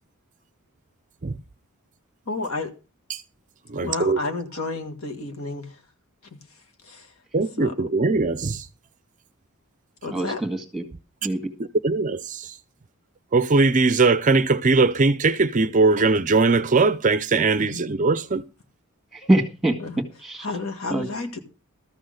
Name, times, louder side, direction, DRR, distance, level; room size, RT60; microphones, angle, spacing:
voice 1, 2.2-2.7 3.8-5.8 6.3-6.4 6.8-7.1 7.6-7.7 10.0-10.4 17.6-17.8 19.8-19.9 20.4-21.4, left 3 dB, 65° left, 1.8 m, -31 dB
voice 2, 3.7-4.2 7.3-8.7 11.8-12.6 13.3-18.4, right 3 dB, 35° right, 0.5 m, -20 dB
voice 3, 10.1-10.8 11.2-11.5 19.1-19.8 20.2-20.5 20.9-21.1, right 1 dB, ahead, 1.9 m, -23 dB
13.5 x 6.2 x 6.4 m
head